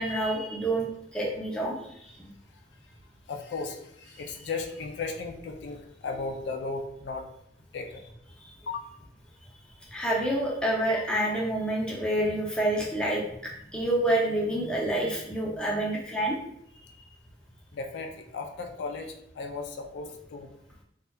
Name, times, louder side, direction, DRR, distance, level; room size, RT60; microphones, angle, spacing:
voice 1, 0.0-1.8 2.2-2.3 8.4-8.5 9.9-16.4, right 1 dB, 5° left, -4 dB, 0.5 m, -28 dB
voice 2, 3.3-7.3 7.7-8.1 8.7-8.9 17.7-20.5, left 4 dB, 65° left, 4 dB, 0.3 m, -36 dB
2.7 x 2.2 x 2.2 m, 0.73 s
head